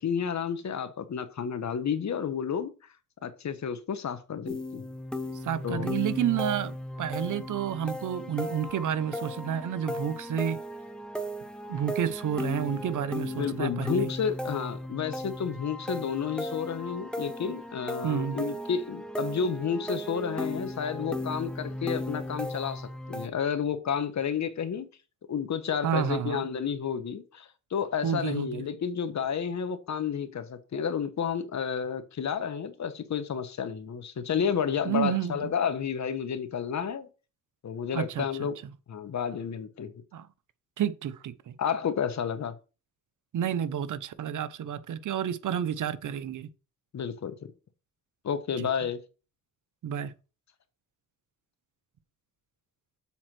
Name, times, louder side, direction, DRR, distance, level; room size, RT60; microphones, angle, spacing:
voice 1, 0.0-2.7 3.2-4.8 5.6-5.9 13.4-24.9 25.3-37.1 37.6-38.5 38.9-39.9 41.6-42.5 46.9-47.3 48.2-49.0, left 7 dB, 60° left, 1.3 m, -31 dB
sound 1, 4.4-23.3, left 1 dB, 5° left, 1.1 m, -36 dB
voice 2, 5.4-10.6 11.7-14.1 18.0-18.4 25.8-26.4 28.0-28.6 34.9-35.5 37.9-38.5 40.1-40.3 40.8-41.5 43.3-46.5 48.6-48.7 49.8-50.1, right 9 dB, 75° right, 0.9 m, -30 dB
7.2 x 4.3 x 6.2 m
cardioid pair, 65°, 31 cm